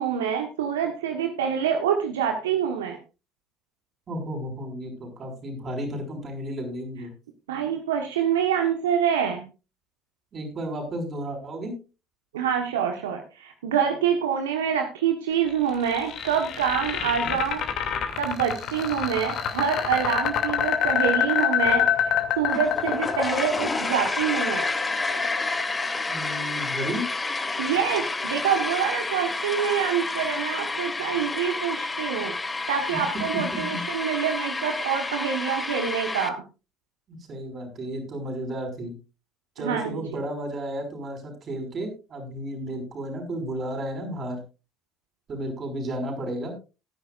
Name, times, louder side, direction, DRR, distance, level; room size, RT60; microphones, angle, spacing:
voice 1, 0.0-3.0 7.5-9.5 12.3-17.6 18.2-24.7 27.6-36.4 39.6-40.0, right 8 dB, 80° right, 4 dB, 1.3 m, -26 dB
voice 2, 4.1-7.1 10.3-11.7 17.0-17.3 26.1-27.1 32.9-33.0 33.5-33.8 37.1-38.9 39.6-44.4 45.3-46.6, right 1 dB, 40° right, 4 dB, 5.5 m, -33 dB
sound 1, 15.5-27.5, left 9 dB, 55° left, 2.6 m, -27 dB
sound 2, 22.5-36.3, left 3 dB, 20° left, 1.7 m, -30 dB
19.0 x 10.5 x 2.5 m, 0.31 s
hypercardioid pair, 60°, 0 cm